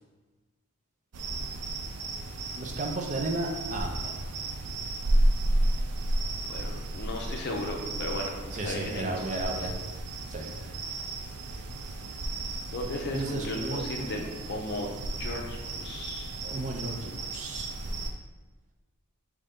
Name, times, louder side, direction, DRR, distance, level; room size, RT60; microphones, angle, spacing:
sound 1, 1.1-18.1, right 1 dB, 85° right, 0.5 m, -32 dB
voice 1, 2.6-4.2 8.5-9.7 10.3-10.5 13.1-14.3 16.4-17.7, right 2 dB, 35° right, 1 dB, 0.5 m, -34 dB
voice 2, 6.5-8.3 8.6-9.5 12.7-14.9 15.2-16.3, left 1 dB, 50° left, 1 dB, 0.6 m, -36 dB
3.9 x 3.2 x 3.6 m, 1.2 s
head